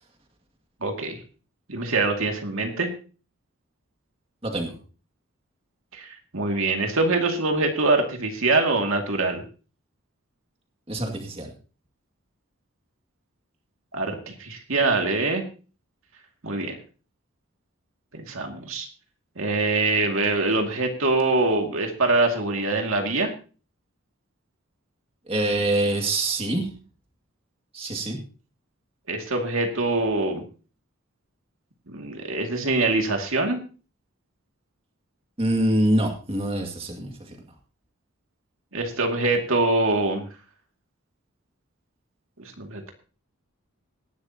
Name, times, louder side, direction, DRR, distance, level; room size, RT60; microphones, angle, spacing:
voice 1, 0.8-1.2 1.7-2.9 5.9-9.4 13.9-15.4 16.4-16.8 18.1-18.9 19.4-23.3 29.1-30.4 31.9-33.6 38.7-40.2 42.4-42.9, right 3 dB, 70° right, 3 dB, 2.3 m, -24 dB
voice 2, 4.4-4.8 10.9-11.5 25.3-26.7 27.7-28.2 35.4-37.4, right 1 dB, 25° right, 3 dB, 2.2 m, -25 dB
18.0 x 11.5 x 2.9 m, 0.36 s
head